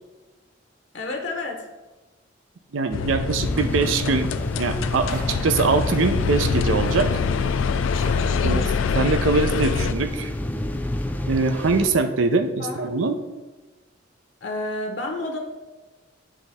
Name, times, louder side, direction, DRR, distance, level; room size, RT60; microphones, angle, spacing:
voice 1, 0.9-1.6 8.4-8.9 12.6-12.8 14.4-15.4, left 2 dB, 60° left, 2 dB, 0.8 m, -30 dB
voice 2, 2.7-7.1 8.4-8.6 8.9-10.3 11.3-13.2, right 4 dB, 90° right, 8 dB, 0.5 m, -23 dB
sound 1, 2.9-9.9, left 6 dB, 90° left, 0.3 m, -25 dB
sound 2, 3.4-11.9, left 1 dB, 10° left, 0.4 m, -30 dB
sound 3, 5.1-5.7 6.7-6.8 7.3-7.5 8.0-8.5, right 1 dB, 45° right, 1.1 m, -40 dB
8.4 x 3.5 x 4.1 m, 1.2 s
head